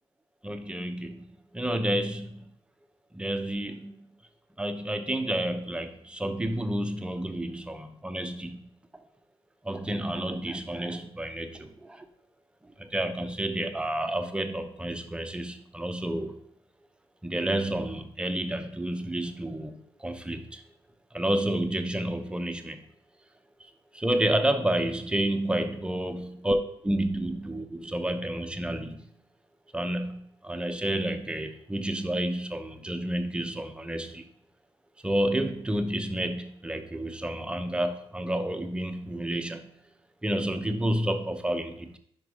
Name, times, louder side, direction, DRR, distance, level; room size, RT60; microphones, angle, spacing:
voice 1, 0.4-1.2 1.5-2.5 3.1-4.1 4.6-8.6 8.9-9.0 9.6-12.1 12.6-16.4 17.2-20.6 21.1-22.8 23.9-29.1 29.7-34.2 35.0-39.7 40.2-42.0, right 1 dB, 10° right, 7 dB, 0.7 m, -30 dB
5.2 x 4.6 x 5.0 m, 0.68 s
cardioid pair, 90°, 10 cm